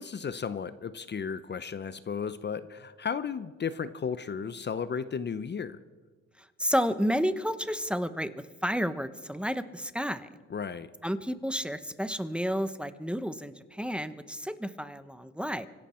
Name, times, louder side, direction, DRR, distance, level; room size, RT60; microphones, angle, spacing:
voice 1, 0.0-5.8 10.5-10.9, left 6 dB, 35° left, 14 dB, 0.7 m, -34 dB
voice 2, 6.4-8.3 8.6-10.3 11.0-15.7, equal, 5° right, 12 dB, 0.8 m, -31 dB
25.5 x 11.5 x 4.4 m, 1.4 s
cardioid pair, 90°, 30 cm